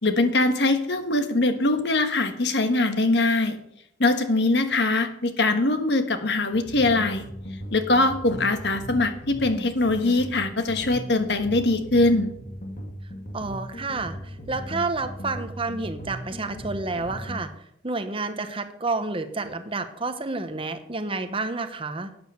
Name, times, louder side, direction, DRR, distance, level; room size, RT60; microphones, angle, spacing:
voice 1, 0.0-3.6 4.0-7.3 7.7-12.3, left 2 dB, 65° left, 8 dB, 1.4 m, -22 dB
sound 1, 6.5-17.4, equal, 40° left, 1.7 m, -38 dB
voice 2, 13.3-17.5 17.8-22.1, right 3 dB, 30° right, 9 dB, 1.0 m, -30 dB
12.0 x 8.7 x 6.7 m, 0.75 s
head